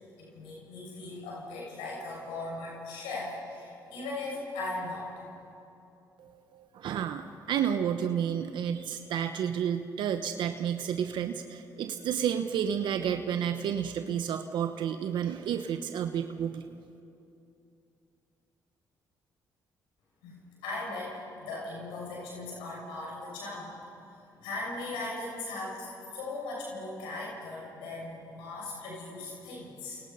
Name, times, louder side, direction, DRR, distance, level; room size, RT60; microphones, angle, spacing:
voice 1, 0.2-5.1 20.2-23.7 24.3-30.0, left 2 dB, 90° left, -3 dB, 7.0 m, -38 dB
voice 2, 6.2-16.7, right 8 dB, 75° right, 7 dB, 1.0 m, -31 dB
29.5 x 28.0 x 5.6 m, 2.8 s
supercardioid pair, 60°, 8 cm